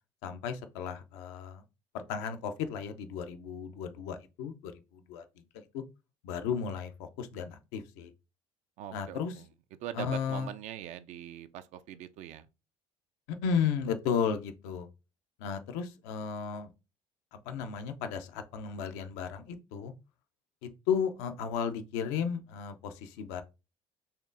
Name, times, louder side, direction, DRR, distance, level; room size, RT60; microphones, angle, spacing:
voice 1, 0.2-1.6 1.9-4.7 5.1-5.2 5.7-5.8 6.2-8.1 8.9-9.3 10.0-10.5 13.4-14.9 15.4-16.7 17.3-19.9 20.6-23.4, left 7 dB, 75° left, 0.6 m, -34 dB
voice 2, 8.8-9.5 9.8-12.5, right 11 dB, 60° right, 0.4 m, -42 dB
4.3 x 3.1 x 2.5 m
hypercardioid pair, 75°, 13 cm